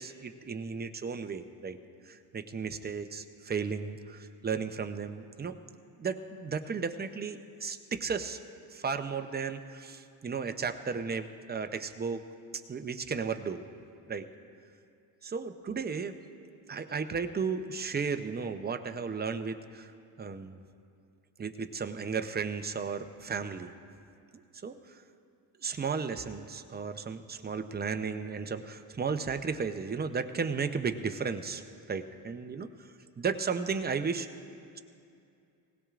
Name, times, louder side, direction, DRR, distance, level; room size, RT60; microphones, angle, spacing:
voice 1, 0.0-1.8 2.1-5.6 6.0-8.4 8.7-12.2 12.7-13.7 14.1-14.3 15.2-19.9 20.2-20.6 21.4-23.7 24.6-25.0 25.6-31.6 31.9-32.7 33.2-34.3, right 5 dB, 20° right, 8 dB, 0.7 m, -34 dB
19.5 x 17.0 x 2.5 m, 2.5 s
supercardioid pair, 85°, 47 cm